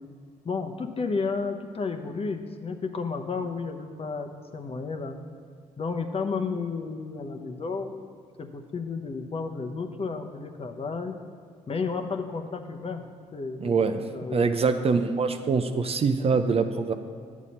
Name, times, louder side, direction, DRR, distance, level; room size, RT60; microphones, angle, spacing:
voice 1, 0.4-5.2 5.8-11.2 11.7-13.1 13.3-14.5, left 4 dB, 35° left, 5 dB, 0.9 m, -32 dB
voice 2, 13.6-14.0 14.3-16.9, right 4 dB, 40° right, 8 dB, 0.6 m, -24 dB
9.4 x 7.2 x 4.2 m, 2.3 s
hypercardioid pair, 55°, 16 cm